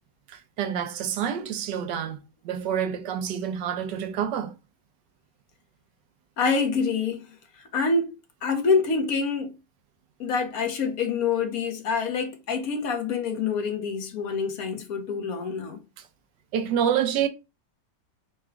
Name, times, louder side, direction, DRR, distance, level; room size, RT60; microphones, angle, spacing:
voice 1, 0.3-4.5 16.0-16.1 16.5-17.3, right 9 dB, 80° right, 1.4 m, -28 dB
voice 2, 6.4-8.1 8.4-9.5 10.2-15.8, left 5 dB, 60° left, 1.3 m, -26 dB
4.9 x 2.2 x 4.8 m
omnidirectional pair, 1.9 m